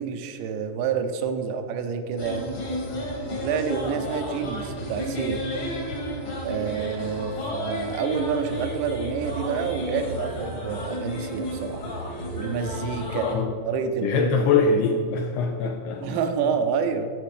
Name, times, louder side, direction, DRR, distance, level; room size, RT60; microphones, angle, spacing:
voice 1, 0.0-2.6 3.3-5.4 6.4-11.8 12.3-13.3 13.7-14.5 16.0-17.1, right 6 dB, 80° right, 7 dB, 2.9 m, -28 dB
sound 1, 2.2-13.3, equal, 50° left, 1.5 m, -32 dB
voice 2, 13.1-13.5 14.0-16.1, left 4 dB, 90° left, 4 dB, 2.4 m, -23 dB
15.5 x 6.8 x 4.9 m, 2.3 s
omnidirectional pair, 5.4 m